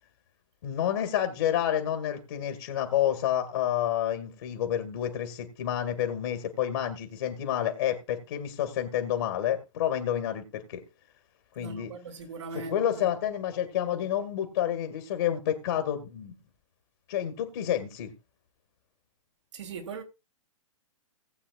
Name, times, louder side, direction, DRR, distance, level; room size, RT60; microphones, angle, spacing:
voice 1, 0.6-10.8 11.5-11.9 12.5-16.3 17.1-18.1, left 10 dB, 45° left, 1.8 m, -29 dB
voice 2, 11.6-13.1 19.5-20.0, right 5 dB, 60° right, 2.4 m, -40 dB
18.5 x 8.4 x 2.4 m
figure-of-eight pair, 115°, 17 cm